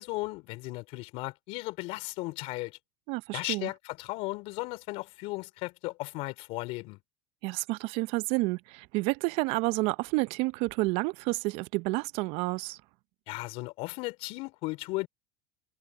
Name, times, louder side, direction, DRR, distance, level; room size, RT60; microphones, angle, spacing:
voice 1, 0.0-2.8 3.3-7.0 13.3-15.1, left 23 dB, 60° left, 3.9 m, -36 dB
voice 2, 3.1-3.7 7.4-12.8, right 24 dB, 60° right, 0.9 m, -30 dB
hypercardioid pair, 85°, 11 cm